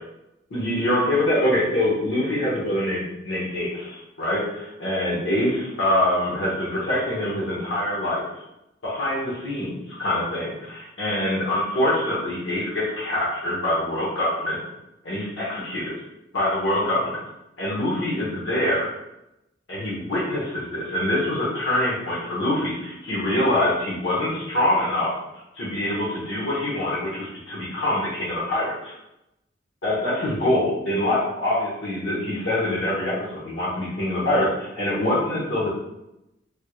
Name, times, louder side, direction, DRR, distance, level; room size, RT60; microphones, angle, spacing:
voice 1, 0.5-8.4 8.8-14.6 15.0-15.9 16.3-17.2 17.6-18.9 19.7-25.2 25.5-28.9 29.8-35.7, left 1 dB, 75° left, -5 dB, 0.9 m, -24 dB
3.5 x 3.0 x 2.2 m, 0.89 s
head